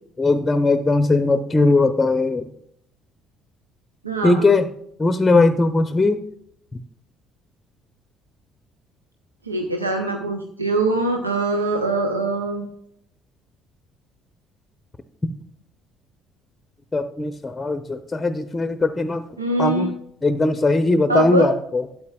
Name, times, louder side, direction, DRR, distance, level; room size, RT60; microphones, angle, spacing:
voice 1, 0.2-2.5 4.2-4.7 5.0-6.2 16.9-19.2 19.6-19.9 20.2-21.8, left 3 dB, 20° left, 10 dB, 0.7 m, -19 dB
voice 2, 4.0-4.5 9.4-12.7 19.4-19.9 21.1-21.5, right 2 dB, 85° right, 4 dB, 0.6 m, -23 dB
12.5 x 8.4 x 2.3 m, 0.71 s
figure-of-eight pair, 50°, 0 cm